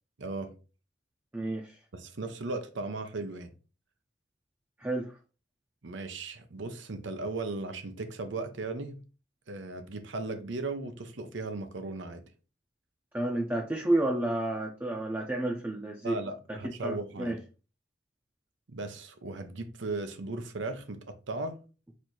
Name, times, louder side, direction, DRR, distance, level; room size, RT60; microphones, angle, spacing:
voice 1, 0.2-0.5 1.9-3.5 5.8-9.0 9.5-12.2 16.0-17.4 18.7-21.6, right 3 dB, 85° right, 0.7 m, -37 dB
voice 2, 1.3-1.8 4.8-5.2 13.1-16.2 16.5-17.4, right 1 dB, 10° right, 0.6 m, -31 dB
4.4 x 2.6 x 4.5 m
head